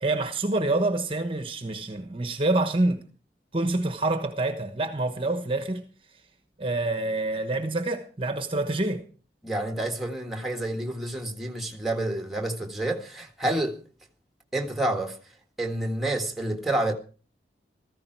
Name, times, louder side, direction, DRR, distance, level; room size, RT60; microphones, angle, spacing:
voice 1, 0.0-3.0 3.5-5.8 6.6-9.0, right 2 dB, 30° right, 1.1 m, -27 dB
voice 2, 9.4-13.8 14.5-15.2 15.6-16.9, right 1 dB, ahead, 1.7 m, -29 dB
15.5 x 14.5 x 4.6 m
head